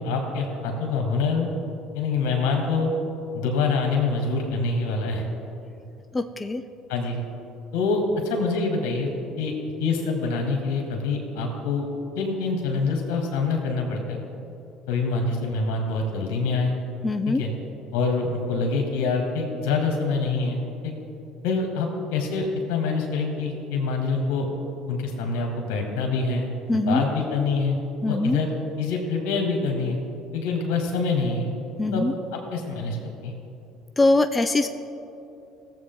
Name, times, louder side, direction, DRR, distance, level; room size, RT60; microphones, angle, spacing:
voice 1, 0.0-1.5 1.9-2.9 3.3-5.2 6.9-7.2 7.7-9.1 9.4-9.5 9.8-11.9 12.2-14.2 14.9-16.7 17.3-17.5 17.9-20.9 21.4-24.5 24.9-27.8 28.1-28.5 28.8-30.0 30.3-31.5 31.9-32.0 32.3-33.3, left 4 dB, 75° left, 1 dB, 1.8 m, -25 dB
voice 2, 6.1-6.6 17.0-17.4 26.7-27.0 28.0-28.4 31.8-32.1 34.0-34.7, left 2 dB, 20° left, 8 dB, 0.5 m, -22 dB
17.5 x 7.6 x 3.9 m, 2.8 s
hypercardioid pair, 70°, 0 cm